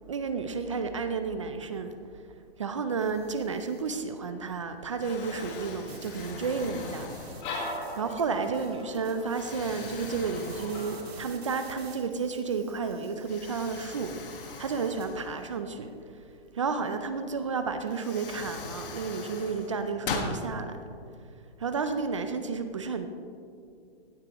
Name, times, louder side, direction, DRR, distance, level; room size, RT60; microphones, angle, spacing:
voice 1, 0.1-1.9 2.6-7.1 7.9-15.9 16.5-20.8 21.6-23.1, right 5 dB, 30° right, 8 dB, 0.4 m, -32 dB
sound 1, 3.0-4.1 5.9-15.1, right 5 dB, 65° right, 2.1 m, -52 dB
Explosion, 4.3-4.7 5.0-7.8 8.4-8.6 9.3-11.6 11.9-12.0 13.2-15.9 17.3-17.4 17.9-20.4, left 4 dB, 55° left, 1.5 m, -40 dB
sound 2, 6.5-11.6, left 2 dB, 25° left, 1.5 m, -41 dB
16.0 x 9.6 x 3.0 m, 2.4 s
hypercardioid pair, 155°, 33 cm